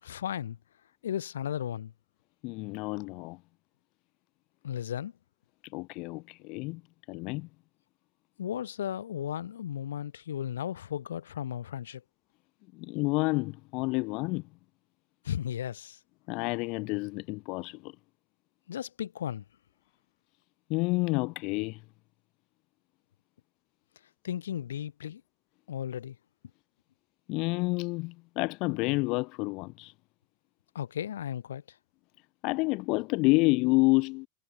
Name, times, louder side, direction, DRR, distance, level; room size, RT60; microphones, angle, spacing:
voice 1, 0.0-0.6 1.0-1.9 4.6-5.1 8.4-12.0 15.2-16.0 18.7-19.4 24.2-25.2 25.7-26.2 30.7-31.6, left 10 dB, 65° left, 7.2 m, -35 dB
voice 2, 2.4-3.4 5.7-6.8 7.1-7.5 12.7-14.5 16.3-17.9 20.7-21.8 27.3-29.9 32.4-34.3, left 26 dB, 40° left, 4.8 m, -29 dB
figure-of-eight pair, 90°, 0 cm